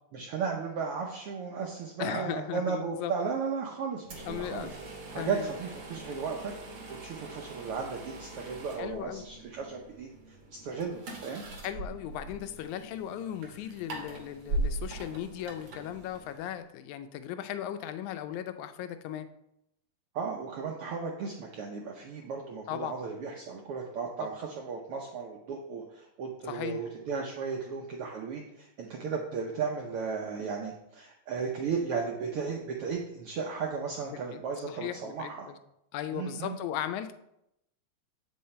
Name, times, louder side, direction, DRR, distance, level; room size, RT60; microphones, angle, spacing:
voice 1, 0.1-4.7 5.1-6.5 7.0-11.4 20.1-35.5 36.1-36.6, right 5 dB, 80° right, 1 dB, 1.3 m, -35 dB
voice 2, 2.0-3.1 4.2-4.7 5.1-5.5 8.8-9.3 11.6-19.3 22.7-23.0 24.2-24.3 26.5-26.8 34.1-35.6 35.9-37.1, left 10 dB, 85° left, 10 dB, 2.0 m, -37 dB
sound 1, 4.0-16.6, right 2 dB, 55° right, 1.5 m, -41 dB
7.8 x 5.5 x 4.2 m, 0.82 s
omnidirectional pair, 3.4 m